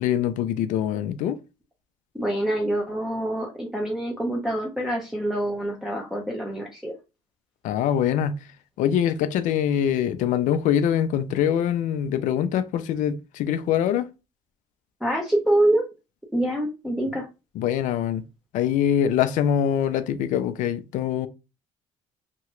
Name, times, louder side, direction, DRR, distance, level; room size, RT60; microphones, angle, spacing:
voice 1, 0.0-1.4 7.6-8.4 8.8-14.1 17.6-18.2 18.5-21.3, left 9 dB, 75° left, 0.4 m, -24 dB
voice 2, 2.1-6.9 15.0-15.8 16.3-17.3, right 1 dB, 5° right, 0.7 m, -25 dB
2.9 x 2.3 x 3.0 m
cardioid pair, 95°, 13 cm